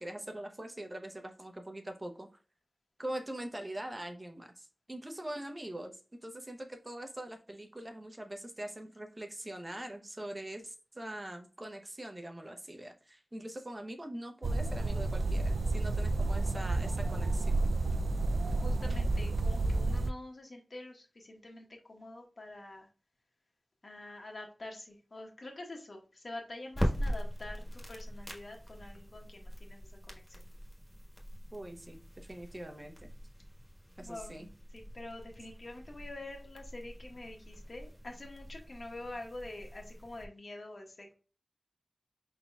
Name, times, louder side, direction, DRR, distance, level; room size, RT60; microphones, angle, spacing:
voice 1, 0.0-2.3 3.0-17.7 31.5-33.1 34.0-34.5, right 1 dB, 25° right, 4 dB, 0.7 m, -43 dB
sound 1, 14.4-20.1, right 2 dB, 90° right, 0.3 m, -30 dB
voice 2, 18.5-22.9 23.8-30.4 34.0-41.1, left 2 dB, 55° left, 1 dB, 1.3 m, -46 dB
sound 2, 26.7-40.2, equal, 10° left, 1.3 m, -41 dB
5.2 x 4.0 x 2.3 m, 0.37 s
wide cardioid pair, 95°, 0 cm